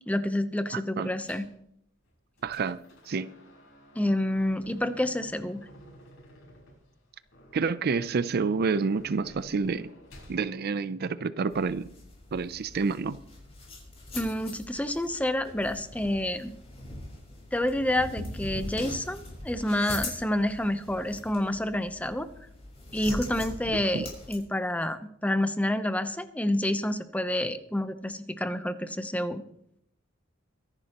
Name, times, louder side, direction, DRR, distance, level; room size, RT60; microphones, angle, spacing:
voice 1, 0.1-1.5 4.0-5.6 14.1-16.5 17.5-22.3 22.9-29.4, left 1 dB, 5° left, 10 dB, 0.7 m, -28 dB
voice 2, 0.7-1.1 2.4-2.8 3.1-3.3 7.5-9.9 10.3-11.9 12.3-13.2 23.7-24.1, right 4 dB, 50° right, 15 dB, 0.5 m, -29 dB
sound 1, 1.2-1.6 2.1-10.4, equal, 75° left, 6.2 m, -52 dB
sound 2, 11.5-24.4, left 2 dB, 30° left, 5.7 m, -42 dB
24.0 x 11.0 x 3.0 m, 0.72 s
head